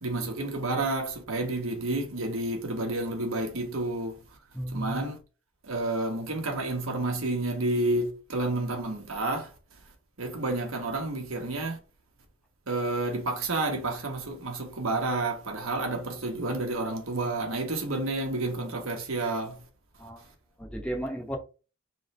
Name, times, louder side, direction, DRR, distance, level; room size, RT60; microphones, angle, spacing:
voice 1, 0.0-4.2 4.7-5.2 5.6-9.5 10.2-11.8 12.7-19.6, right 2 dB, 75° right, 1.3 m, -30 dB
voice 2, 4.5-5.1 20.0-20.3 20.6-21.4, right 1 dB, 5° left, 0.9 m, -34 dB
3.5 x 3.3 x 4.2 m
head